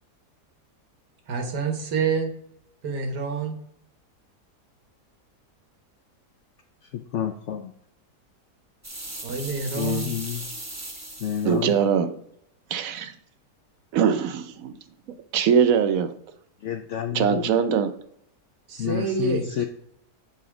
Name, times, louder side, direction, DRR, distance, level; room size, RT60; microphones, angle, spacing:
voice 1, 1.3-2.3 2.8-3.6 9.2-10.1 18.7-19.5, right 5 dB, 85° right, 4 dB, 1.8 m, -27 dB
voice 2, 6.8-7.7 9.7-10.5 11.2-11.8 16.6-17.7 18.8-19.7, left 10 dB, 75° left, 7 dB, 0.6 m, -29 dB
sound 1, 8.8-11.6, right 1 dB, 15° right, 0.6 m, -37 dB
voice 3, 11.5-12.1 12.7-13.1 13.9-14.7 15.3-16.1 17.1-17.9, right 7 dB, 65° right, 10 dB, 0.9 m, -21 dB
6.9 x 4.0 x 4.9 m, 0.72 s
omnidirectional pair, 1.7 m